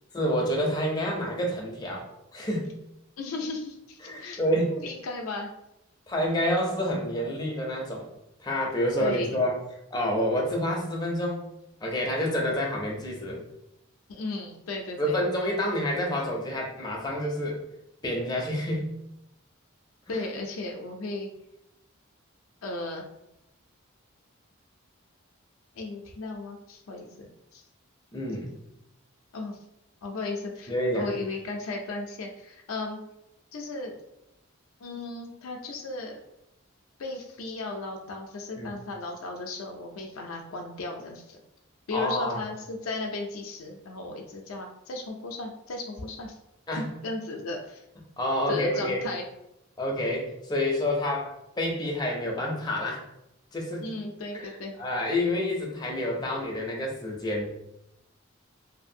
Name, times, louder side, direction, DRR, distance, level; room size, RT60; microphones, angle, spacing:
voice 1, 0.1-2.1 2.3-2.7 4.0-4.7 6.1-8.1 8.4-9.6 9.9-11.4 11.8-13.4 15.0-17.6 18.0-18.9 20.1-20.3 28.1-28.6 30.7-31.1 38.6-38.7 41.9-42.4 46.7-46.9 48.2-49.0 49.8-53.0 53.5-53.9 54.3-54.5 54.8-57.5, left 1 dB, 20° left, -2 dB, 0.4 m, -28 dB
voice 2, 3.2-5.5 9.0-9.4 14.1-15.2 20.1-21.3 22.6-23.0 25.8-27.6 29.3-29.6 30.0-33.0 33.5-33.9 34.8-36.2 37.0-41.4 41.9-46.3 46.8-47.8 48.5-49.2 53.8-54.7, left 2 dB, 75° left, 1 dB, 0.4 m, -35 dB
2.6 x 2.5 x 2.6 m, 0.85 s
head